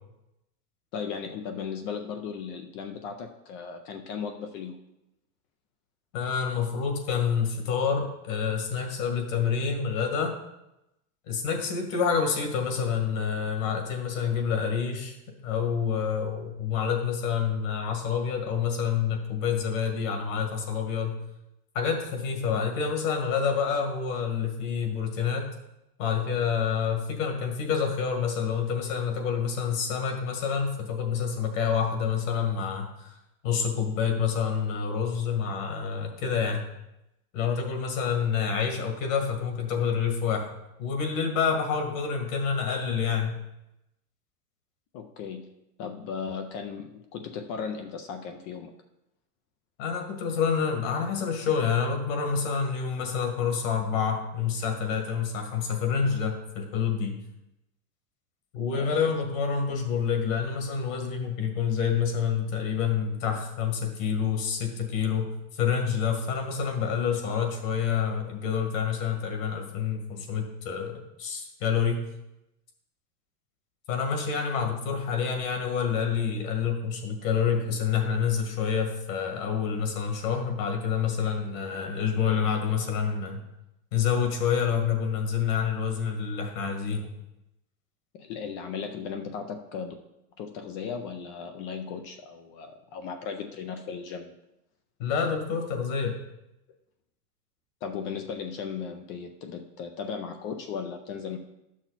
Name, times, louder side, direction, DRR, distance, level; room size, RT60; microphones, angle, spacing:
voice 1, 0.9-4.8 44.9-45.5 45.8-48.7 58.7-59.1 88.1-89.9 90.4-94.3 97.8-101.4, left 6 dB, 25° left, 6 dB, 0.4 m, -36 dB
voice 2, 6.1-10.3 11.3-15.1 15.4-21.2 21.7-25.5 26.0-33.2 33.4-36.6 37.3-40.5 40.8-43.4 49.8-57.2 58.5-65.3 65.5-72.0 73.9-83.4 83.9-87.1 95.0-96.2, left 6 dB, 60° left, 4 dB, 2.0 m, -28 dB
10.5 x 6.2 x 4.1 m, 0.89 s
supercardioid pair, 135°, 46 cm